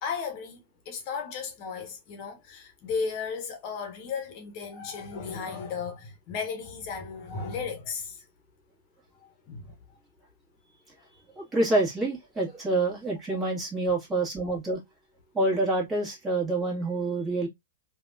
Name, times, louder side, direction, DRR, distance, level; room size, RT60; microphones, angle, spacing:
voice 1, 0.0-0.6 0.9-8.2 9.2-9.7 11.1-11.2, left 5 dB, 45° left, 0.9 m, -35 dB
voice 2, 11.4-14.8 15.3-17.5, right 2 dB, 15° right, 1.5 m, -27 dB
3.4 x 2.3 x 2.4 m
hypercardioid pair, 130°, 0 cm